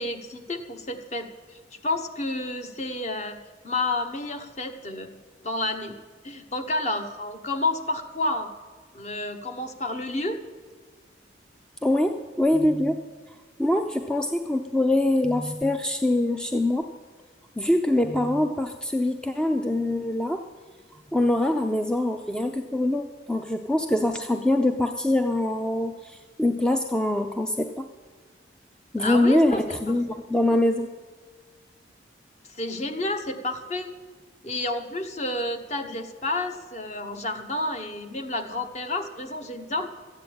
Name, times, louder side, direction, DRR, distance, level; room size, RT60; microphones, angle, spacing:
voice 1, 0.0-3.4 3.6-5.1 5.4-5.9 6.2-8.5 8.9-10.4 29.0-29.8 30.1-30.2 32.5-33.9 34.4-39.9, left 2 dB, 35° left, 7 dB, 1.1 m, -30 dB
voice 2, 11.8-13.0 13.6-16.9 17.6-20.5 21.1-27.9 28.9-30.9, left 1 dB, 5° left, 6 dB, 0.4 m, -24 dB
13.5 x 9.1 x 8.6 m, 1.5 s
head